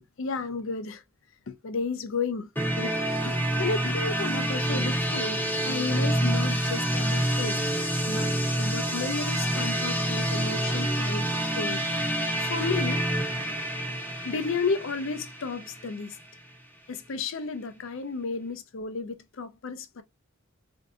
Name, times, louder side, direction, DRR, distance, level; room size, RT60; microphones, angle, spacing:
voice 1, 0.2-1.0 1.5-2.5 2.8-3.0 3.2-5.4 5.6-7.6 8.1-11.3 11.5-11.8 12.5-13.1 14.2-16.2 16.9-20.0, left 4 dB, 65° left, 0.5 m, -32 dB
sound 1, 2.6-16.3, right 1 dB, 10° left, 0.7 m, -27 dB
4.4 x 2.6 x 2.3 m
head